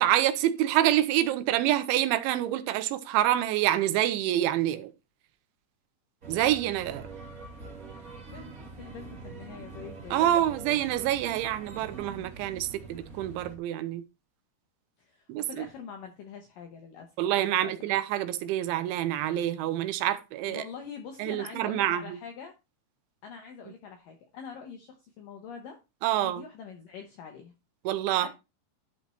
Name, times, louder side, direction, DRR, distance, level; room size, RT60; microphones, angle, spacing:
voice 1, 0.0-4.9 6.3-7.1 10.1-14.0 15.3-15.7 17.2-20.6 21.2-22.2 26.0-26.4 27.8-28.3, right 13 dB, 90° right, 3.1 m, -27 dB
sound 1, 6.2-13.5, right 4 dB, 45° right, 1.1 m, -44 dB
voice 2, 8.2-10.5 15.0-17.1 17.5-17.7 20.5-22.5 23.2-25.8 26.1-27.5 28.2-28.3, left 6 dB, 80° left, 2.0 m, -44 dB
11.5 x 4.4 x 4.3 m
omnidirectional pair, 5.3 m